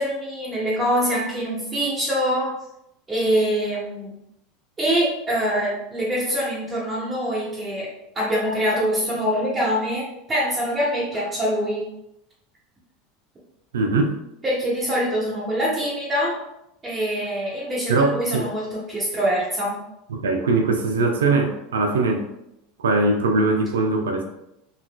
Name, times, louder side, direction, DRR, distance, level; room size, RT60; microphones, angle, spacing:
voice 1, 0.0-2.5 3.1-4.1 4.8-7.9 8.1-11.8 14.4-16.4 16.8-19.7, equal, 25° right, -7 dB, 1.2 m, -24 dB
voice 2, 13.7-14.2 17.9-18.5 20.1-22.3 22.8-24.2, right 3 dB, 90° right, 4 dB, 0.5 m, -21 dB
3.9 x 2.4 x 2.3 m, 0.82 s
hypercardioid pair, 95°, 0 cm